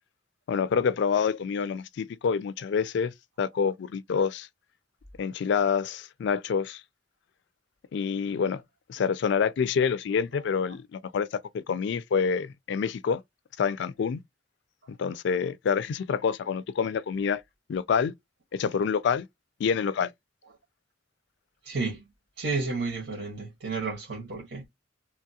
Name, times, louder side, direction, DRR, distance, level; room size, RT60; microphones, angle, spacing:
voice 1, 0.5-4.5 5.2-6.8 7.9-8.6 8.9-13.2 13.6-14.2 14.9-17.4 17.7-18.1 18.5-19.3 19.6-20.1, left 6 dB, 65° left, 0.3 m, -27 dB
voice 2, 21.6-22.0 22.4-24.7, right 3 dB, 85° right, 1.3 m, -31 dB
3.1 x 2.3 x 2.7 m
head